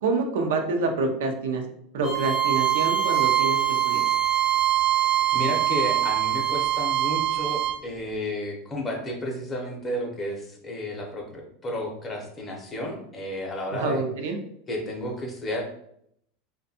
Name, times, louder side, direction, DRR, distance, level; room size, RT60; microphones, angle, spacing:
voice 1, 0.0-4.1 13.7-14.4, right 3 dB, 80° right, 4 dB, 0.5 m, -27 dB
Bowed string instrument, 2.0-7.8, right 12 dB, 25° right, 0.5 m, -23 dB
voice 2, 5.3-14.0 14.7-15.6, left 1 dB, 20° left, 0 dB, 0.6 m, -32 dB
2.5 x 2.2 x 2.7 m, 0.71 s
supercardioid pair, 145°, 0 cm